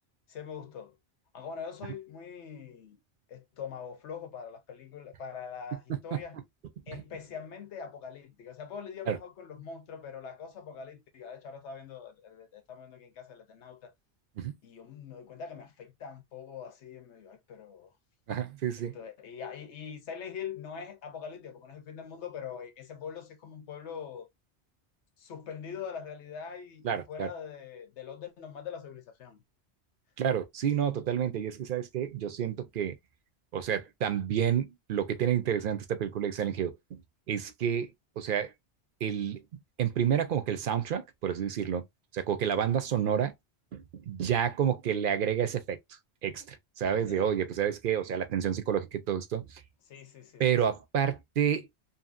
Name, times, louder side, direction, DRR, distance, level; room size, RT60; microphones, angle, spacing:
voice 1, 0.3-1.0 1.3-3.0 3.3-6.4 6.9-13.9 14.6-17.9 18.9-24.3 25.2-29.4 47.1-47.3 49.9-50.4, left 7 dB, 90° left, 1.1 m, -43 dB
voice 2, 18.3-19.0 26.8-27.3 30.2-33.0 33.5-37.0 37.3-37.9 38.2-38.5 39.0-41.8 42.1-43.3 43.7-45.8 46.2-49.6 50.4-51.7, right 9 dB, 60° right, 0.7 m, -29 dB
2.7 x 2.7 x 2.4 m
omnidirectional pair, 1.1 m